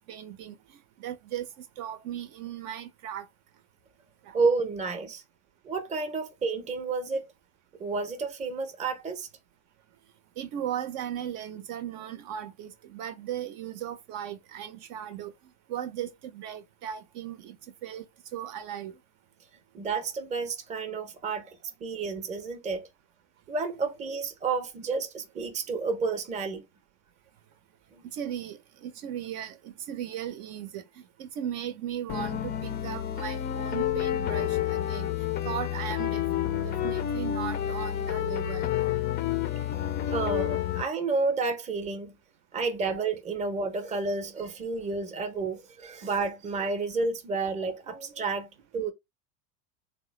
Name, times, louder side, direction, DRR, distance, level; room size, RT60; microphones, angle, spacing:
voice 1, 0.1-0.6 1.0-3.3 4.2-4.4 10.4-15.3 15.7-17.6 17.8-18.1 18.3-18.9 28.1-36.2 36.6-38.7, right 10 dB, 60° right, 0.6 m, -37 dB
voice 2, 4.3-5.2 5.6-7.3 7.8-9.3 19.7-22.9 23.5-26.7 27.9-28.0 40.1-42.1 42.5-48.9, right 4 dB, 20° right, 0.6 m, -30 dB
sound 1, 32.1-40.9, left 11 dB, 25° left, 0.4 m, -29 dB
3.3 x 2.0 x 3.1 m
supercardioid pair, 115°, 39 cm